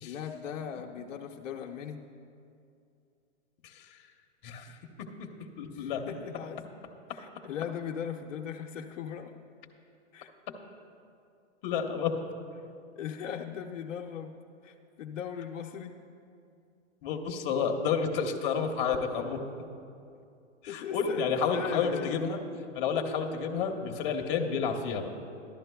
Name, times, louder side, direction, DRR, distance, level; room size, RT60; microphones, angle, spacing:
voice 1, 0.0-2.0 5.7-6.6 7.1-9.3 10.1-10.3 13.0-14.3 14.6-16.0 20.7-22.3, left 8 dB, 75° left, 4 dB, 0.7 m, -38 dB
voice 2, 5.6-6.0 11.6-12.2 17.0-19.4 20.6-22.4 22.7-25.1, left 6 dB, 40° left, 4 dB, 0.9 m, -30 dB
13.5 x 12.0 x 2.3 m, 2.5 s
hypercardioid pair, 140°, 38 cm